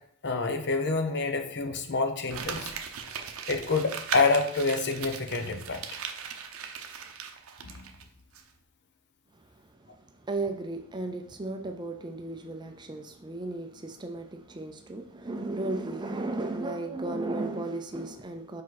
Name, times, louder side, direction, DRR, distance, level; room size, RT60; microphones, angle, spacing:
voice 1, 0.2-2.7 3.5-5.8 7.8-7.9, left 3 dB, 50° left, 0.7 m, -27 dB
Crumpling crinkling, 2.3-8.0 8.3-8.4, right 7 dB, 65° right, 0.7 m, -38 dB
voice 2, 9.3-18.6, right 2 dB, 20° right, 0.4 m, -35 dB
5.0 x 4.7 x 4.0 m
head